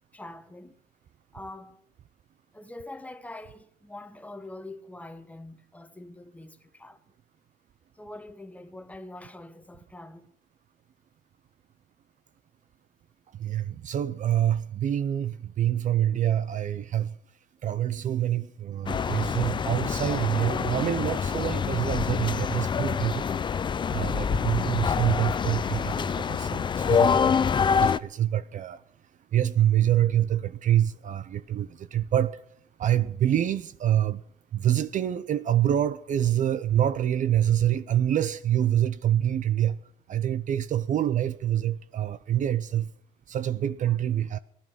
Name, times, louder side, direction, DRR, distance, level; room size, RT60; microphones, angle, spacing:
voice 1, 0.1-0.8 1.3-1.8 2.5-7.0 8.0-10.3 43.9-44.0, left 2 dB, 10° left, 1.2 m, -44 dB
voice 2, 13.4-17.2 17.6-23.3 23.9-28.8 29.3-32.4 32.8-34.2 34.5-39.8 40.1-42.9 43.3-44.4, right 11 dB, 50° right, 0.6 m, -26 dB
sound 1, 18.9-28.0, left 6 dB, 30° left, 0.5 m, -26 dB
16.0 x 11.5 x 6.1 m
cardioid pair, 110°, 17 cm